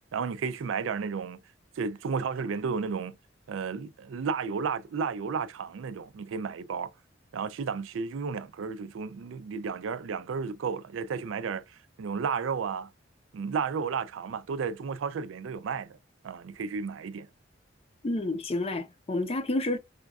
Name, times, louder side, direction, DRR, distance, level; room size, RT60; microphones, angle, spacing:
voice 1, 0.1-1.4 1.8-3.2 3.5-6.9 7.3-12.9 13.3-16.0 16.2-17.3, right 5 dB, 85° right, 0.4 m, -33 dB
voice 2, 18.0-19.8, left 2 dB, 30° left, 0.6 m, -29 dB
4.9 x 2.3 x 2.3 m
head